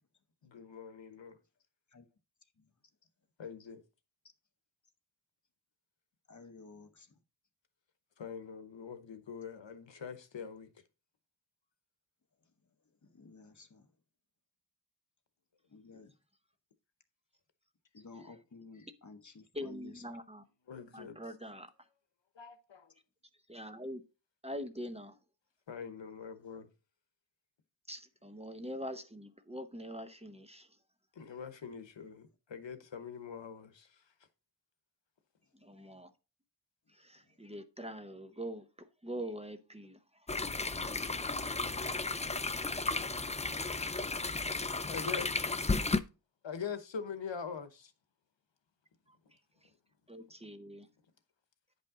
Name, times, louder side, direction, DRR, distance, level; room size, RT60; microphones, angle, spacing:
voice 1, 0.4-1.4 3.4-3.8 8.2-10.7 15.9-16.0 20.7-21.2 22.4-22.9 25.7-26.7 31.2-34.0 44.9-45.3 46.4-47.9, left 6 dB, 90° left, 1.0 m, -43 dB
voice 2, 6.3-7.1 13.1-13.9 15.7-16.1 17.9-20.0, left 4 dB, 40° left, 1.0 m, -53 dB
voice 3, 19.5-20.4 20.9-21.7 23.5-24.0 24.4-25.1 27.9-30.7 35.6-36.1 37.0-38.7 39.0-40.0 50.1-50.9, equal, 15° right, 0.8 m, -43 dB
sound 1, 40.3-46.0, left 3 dB, 15° left, 0.4 m, -34 dB
9.7 x 5.4 x 3.7 m
wide cardioid pair, 90°, 43 cm